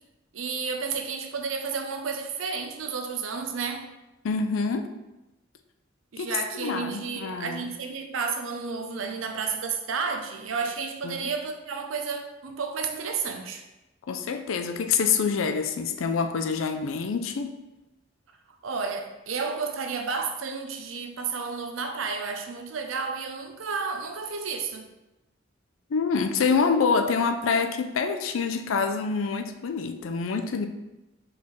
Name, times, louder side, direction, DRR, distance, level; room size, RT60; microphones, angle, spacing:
voice 1, 0.3-3.8 6.1-13.6 18.6-24.9, right 5 dB, 90° right, 5 dB, 0.6 m, -31 dB
voice 2, 4.2-4.9 6.2-6.3 6.6-7.7 11.0-11.2 14.1-17.5 25.9-30.7, left 5 dB, 85° left, 7 dB, 0.4 m, -26 dB
4.6 x 3.5 x 3.1 m, 1.0 s
head